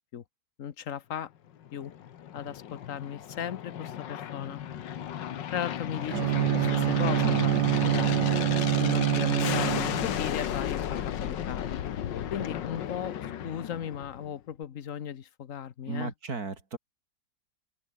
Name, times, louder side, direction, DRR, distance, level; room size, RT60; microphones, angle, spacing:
voice 1, 0.6-1.3 1.7-1.9 2.3-4.6 5.5-7.5 7.8-8.1 8.7-11.8 12.3-13.2 13.4-16.1, left 9 dB, 50° left, 1.3 m, -36 dB
Aircraft, 1.6-14.4, left 10 dB, 85° left, 1.9 m, -34 dB
Bowed string instrument, 6.1-10.3, right 12 dB, 75° right, 1.4 m, -26 dB
voice 2, 7.2-7.7 15.9-16.8, right 4 dB, 55° right, 3.8 m, -34 dB
open air
omnidirectional pair, 1.9 m